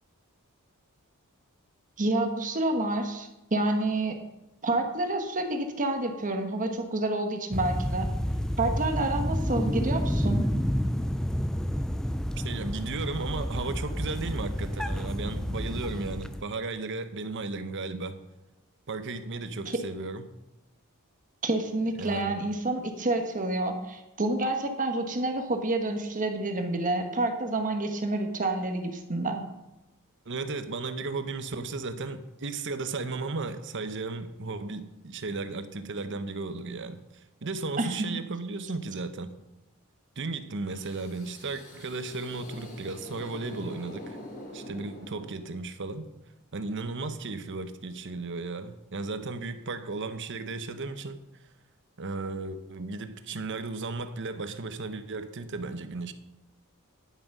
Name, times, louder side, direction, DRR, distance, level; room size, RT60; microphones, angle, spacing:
voice 1, 2.0-4.2 4.6-8.1 8.6-10.4 21.4-29.4 37.8-38.2, right 2 dB, 35° right, 5 dB, 1.3 m, -28 dB
sound 1, 7.5-16.4, equal, 5° left, 0.3 m, -30 dB
voice 2, 12.4-18.2 18.9-20.2 22.0-22.4 30.3-39.3 40.2-44.2 44.5-46.1 46.5-51.2 52.0-56.1, right 3 dB, 55° right, 10 dB, 0.8 m, -35 dB
sound 2, 40.6-45.7, left 1 dB, 50° left, 3.7 m, -45 dB
10.5 x 7.4 x 5.4 m, 0.96 s
head